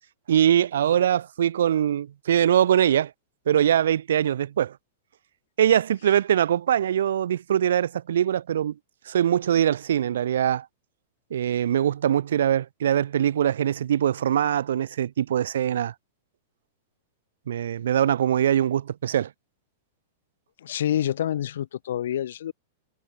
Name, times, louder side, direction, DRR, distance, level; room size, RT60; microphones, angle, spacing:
voice 1, 0.3-3.1 3.5-4.7 5.6-8.7 9.1-10.7 11.3-15.9 17.5-19.3, right 10 dB, 80° right, 2.4 m, -22 dB
voice 2, 20.6-22.5, left 11 dB, 75° left, 5.3 m, -27 dB
hypercardioid pair, 120°, 0 cm